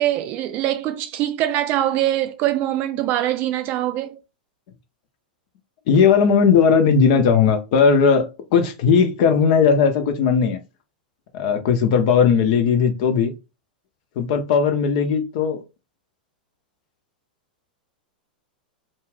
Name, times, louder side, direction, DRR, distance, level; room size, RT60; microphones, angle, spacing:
voice 1, 0.0-4.2, right 13 dB, 40° right, 0.5 m, -23 dB
voice 2, 5.9-10.6 11.3-13.3 14.2-15.6, left 6 dB, 50° left, 0.7 m, -17 dB
2.4 x 2.4 x 3.2 m
figure-of-eight pair, 95°, 5 cm